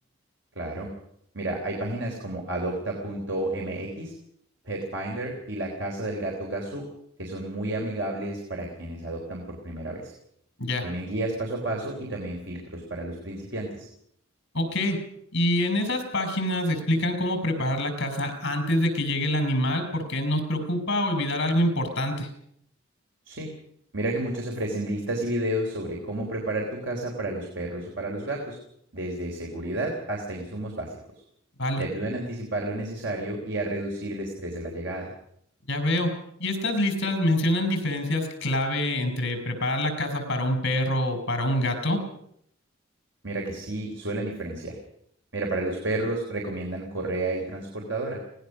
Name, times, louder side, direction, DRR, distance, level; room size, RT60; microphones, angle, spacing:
voice 1, 0.6-0.9 1.3-4.1 4.7-6.9 7.2-10.1 10.8-13.9 23.3-23.5 23.9-28.6 28.9-30.9 31.8-35.1 43.2-44.8 45.3-48.2, right 1 dB, 65° right, 0 dB, 3.7 m, -31 dB
voice 2, 14.5-15.0 15.3-22.3 31.6-31.8 35.7-36.1 36.4-42.0, left 1 dB, 65° left, 7 dB, 5.1 m, -26 dB
23.5 x 18.5 x 6.3 m, 0.71 s
head